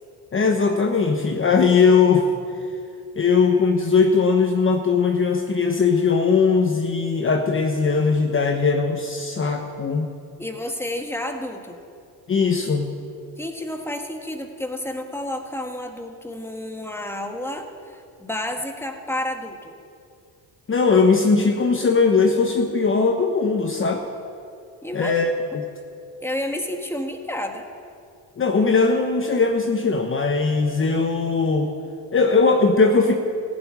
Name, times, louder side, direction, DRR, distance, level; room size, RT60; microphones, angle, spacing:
voice 1, 0.3-2.3 3.1-10.1 12.3-12.9 20.7-24.0 24.9-25.3 28.4-31.7 32.1-33.1, left 4 dB, 30° left, 3 dB, 1.2 m, -19 dB
voice 2, 10.4-11.8 13.4-19.7 24.8-25.2 25.5-25.6 26.2-27.7, left 1 dB, 5° left, 4 dB, 1.6 m, -30 dB
15.0 x 7.3 x 9.6 m, 2.4 s
cardioid pair, 90°, 41 cm